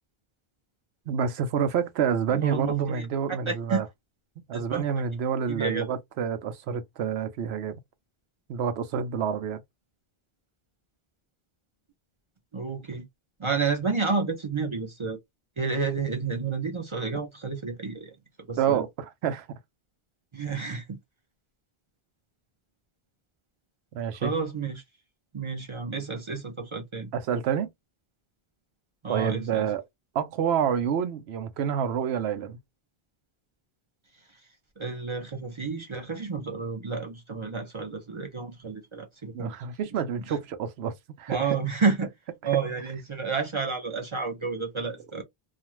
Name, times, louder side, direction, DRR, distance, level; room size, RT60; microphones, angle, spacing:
voice 1, 1.1-3.8 4.4-7.8 8.5-9.6 18.6-19.6 23.9-24.3 27.1-27.7 29.1-29.8 30.1-32.6 39.3-41.5, right 8 dB, 90° right, 0.9 m, -28 dB
voice 2, 2.3-3.8 4.5-5.0 5.5-6.0 12.5-13.1 13.4-15.2 15.6-18.1 18.4-18.8 20.3-21.0 24.2-24.8 25.3-27.1 29.0-29.7 34.8-39.5 40.2-40.4 41.3-42.1 42.4-45.2, right 4 dB, 40° right, 0.5 m, -30 dB
2.5 x 2.3 x 3.0 m
omnidirectional pair, 1.0 m